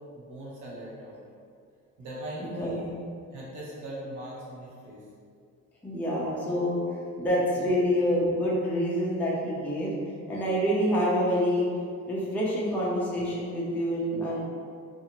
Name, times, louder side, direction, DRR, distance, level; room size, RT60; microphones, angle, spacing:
voice 1, 0.1-1.2 2.0-2.9 3.3-5.0 7.6-7.7, right 1 dB, 75° right, -6 dB, 1.0 m, -40 dB
voice 2, 2.4-2.7 5.8-9.9 10.3-11.7 12.1-14.4, equal, 5° left, -7 dB, 0.4 m, -27 dB
2.6 x 2.4 x 2.8 m, 2.2 s
cardioid pair, 145°, 30 cm